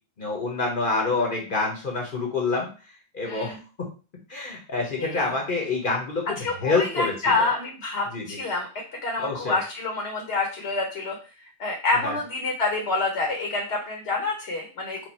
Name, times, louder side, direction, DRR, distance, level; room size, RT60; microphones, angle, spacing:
voice 1, 0.2-2.7 3.1-3.6 4.3-7.5 8.1-8.4 9.2-9.6 12.0-12.2, left 3 dB, 55° left, 0 dB, 1.1 m, -27 dB
voice 2, 3.2-3.6 5.0-5.3 6.4-15.1, left 3 dB, 75° left, 1 dB, 1.2 m, -27 dB
4.7 x 2.4 x 4.1 m, 0.35 s
omnidirectional pair, 1.1 m